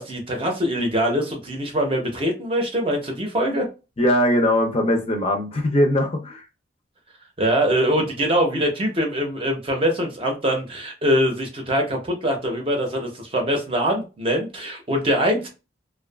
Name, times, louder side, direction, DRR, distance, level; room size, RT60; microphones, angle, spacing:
voice 1, 0.0-3.7 7.4-15.5, equal, 30° right, 0.7 m, -23 dB
voice 2, 4.0-6.4, left 1 dB, 30° left, 0.5 m, -20 dB
2.5 x 2.3 x 2.3 m
head